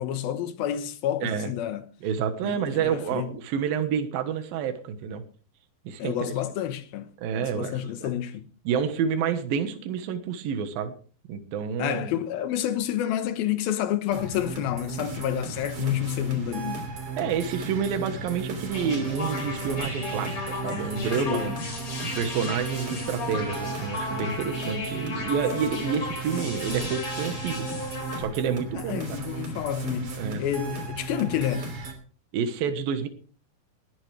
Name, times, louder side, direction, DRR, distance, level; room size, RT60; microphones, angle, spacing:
voice 1, 0.0-1.8 2.4-3.3 6.0-7.1 7.4-8.5 11.8-16.8 21.2-21.6 28.8-31.7, left 11 dB, 80° left, 3.0 m, -29 dB
voice 2, 2.0-5.2 5.8-6.3 7.2-8.1 8.7-10.9 11.3-12.2 17.2-21.6 22.2-27.7 28.2-29.0 30.2-30.4 32.3-33.1, right 7 dB, 75° right, 3.1 m, -29 dB
sound 1, 14.1-31.9, right 3 dB, 40° right, 3.8 m, -35 dB
sound 2, 18.7-28.2, left 3 dB, 45° left, 5.4 m, -35 dB
19.5 x 12.5 x 3.4 m
omnidirectional pair, 4.2 m